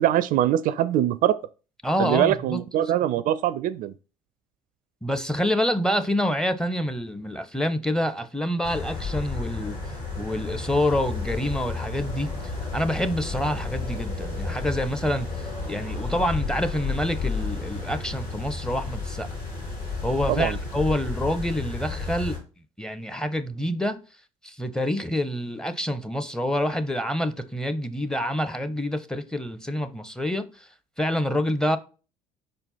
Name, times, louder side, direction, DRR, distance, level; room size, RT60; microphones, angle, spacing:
voice 1, 0.0-1.4 2.0-3.9 20.3-20.6, right 12 dB, 50° right, 0.4 m, -23 dB
voice 2, 1.8-2.6 5.0-9.8 10.2-12.3 12.7-15.3 15.7-19.3 20.0-22.4 22.8-24.0 24.4-30.7 31.0-31.8, left 1 dB, 5° left, 0.7 m, -27 dB
sound 1, 8.6-22.4, left 3 dB, 80° left, 3.6 m, -32 dB
5.4 x 4.4 x 4.1 m
hypercardioid pair, 60°, 18 cm